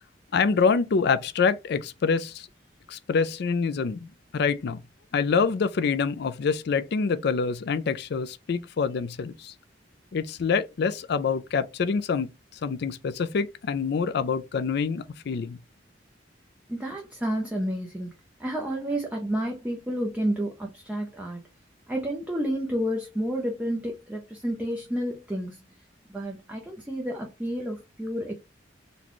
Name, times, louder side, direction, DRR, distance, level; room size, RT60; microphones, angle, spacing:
voice 1, 0.3-2.5 2.9-4.8 5.1-9.5 10.1-12.3 12.6-15.6, left 5 dB, 60° left, 0.4 m, -26 dB
voice 2, 16.7-18.1 18.4-21.4 21.9-25.6 26.1-28.3, equal, 10° right, 0.6 m, -30 dB
4.0 x 2.3 x 3.0 m
head